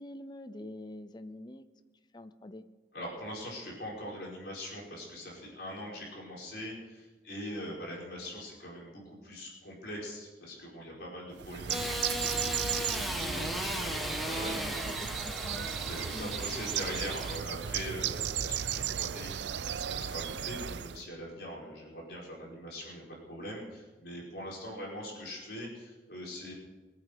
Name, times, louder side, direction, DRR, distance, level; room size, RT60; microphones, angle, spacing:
voice 1, 0.0-1.6 2.1-2.6 14.4-15.7 16.1-16.4, left 1 dB, 25° left, 11 dB, 0.7 m, -45 dB
voice 2, 2.9-14.9 15.9-26.5, equal, 65° left, -3 dB, 5.0 m, -42 dB
Bird, 11.4-21.0, right 9 dB, 80° right, 0.5 m, -35 dB
Engine starting / Sawing, 11.7-17.4, equal, ahead, 1.5 m, -36 dB
21.5 x 8.8 x 6.7 m, 1.2 s
head